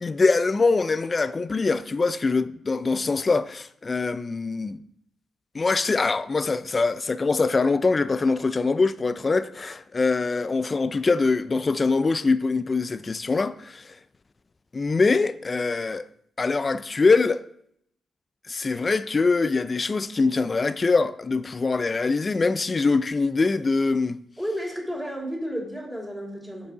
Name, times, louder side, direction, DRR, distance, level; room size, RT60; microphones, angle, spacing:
voice 1, 0.0-4.8 5.5-14.0 14.7-16.0 16.4-17.4 18.5-24.2, left 4 dB, 35° left, 0.3 m, -23 dB
voice 2, 24.4-26.7, equal, 5° left, 3.0 m, -32 dB
6.6 x 5.4 x 4.8 m
cardioid pair, 75°, 0 cm